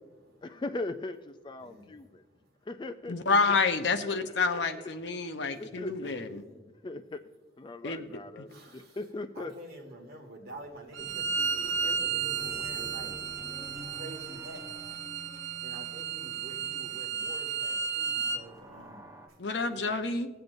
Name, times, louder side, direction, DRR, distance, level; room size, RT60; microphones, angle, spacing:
voice 1, 0.4-2.2 2.6-3.6 4.0-4.7 5.2-6.1 6.5-7.2 7.6-9.5, left 2 dB, 25° left, 9 dB, 0.3 m, -40 dB
voice 2, 3.1-6.4 7.8-8.0 19.4-20.3, left 4 dB, 65° left, 8 dB, 0.7 m, -28 dB
voice 3, 5.7-6.5 8.5-9.0 9.4-11.3 11.6-13.2 13.9-14.7 15.6-19.0 19.7-19.9, right 1 dB, 55° right, 1 dB, 1.7 m, -48 dB
Bowed string instrument, 10.9-18.4, right 6 dB, 85° right, 0.6 m, -33 dB
sound 1, 11.0-17.0 18.0-19.3, equal, 15° right, 1.2 m, -48 dB
19.0 x 7.9 x 2.6 m, 1.2 s
head